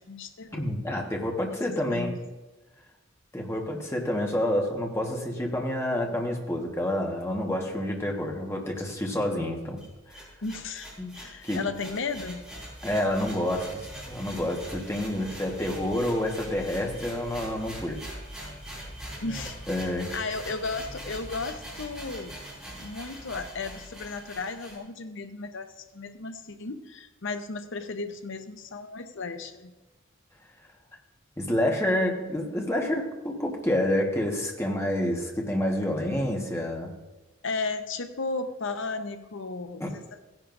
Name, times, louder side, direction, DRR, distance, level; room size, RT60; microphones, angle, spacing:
voice 1, 0.0-0.7 1.9-2.2 10.4-12.5 19.2-19.8 20.1-22.4 22.8-29.7 37.4-40.2, left 3 dB, 65° left, 8 dB, 0.8 m, -35 dB
voice 2, 0.5-2.1 3.3-9.8 10.1-10.3 11.0-11.1 11.4-11.6 12.8-18.1 19.3-19.4 19.7-20.1 31.4-36.9 39.8-39.9, left 1 dB, 15° left, 0 dB, 1.4 m, -28 dB
sound 1, 9.8-24.8, right 1 dB, ahead, 4.2 m, -42 dB
16.0 x 10.5 x 2.6 m, 1.1 s
head